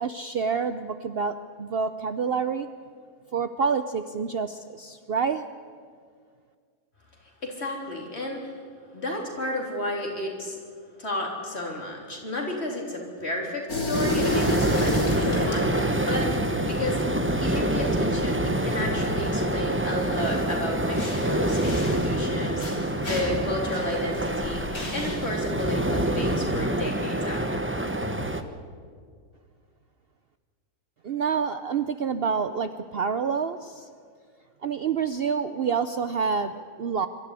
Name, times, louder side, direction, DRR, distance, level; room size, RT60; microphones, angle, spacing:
voice 1, 0.0-2.7 3.3-5.4 31.0-33.9 34.6-37.1, right 6 dB, 55° right, 10 dB, 0.7 m, -28 dB
voice 2, 7.2-8.5 8.9-10.6 11.0-17.1 17.4-27.7 28.0-28.1, left 1 dB, 45° left, 0 dB, 4.0 m, -32 dB
sound 1, 13.7-26.6, left 3 dB, 85° left, 3.6 m, -34 dB
sound 2, 13.9-28.4, right 1 dB, 10° right, 0.8 m, -26 dB
24.5 x 13.0 x 9.8 m, 2.1 s
omnidirectional pair, 1.5 m